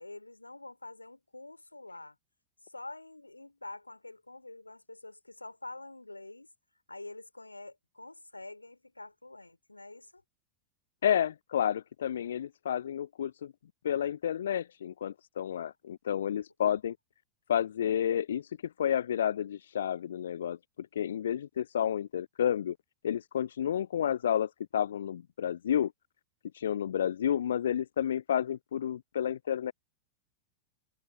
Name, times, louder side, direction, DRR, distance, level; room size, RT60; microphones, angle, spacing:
voice 1, 0.0-2.2 2.6-6.5 6.9-10.2, left 2 dB, 85° left, 3.4 m, -47 dB
voice 2, 11.0-13.5 13.8-17.0 17.5-22.8 23.0-25.9 26.5-29.7, left 9 dB, 65° left, 0.5 m, -31 dB
figure-of-eight pair, 90°, 0 cm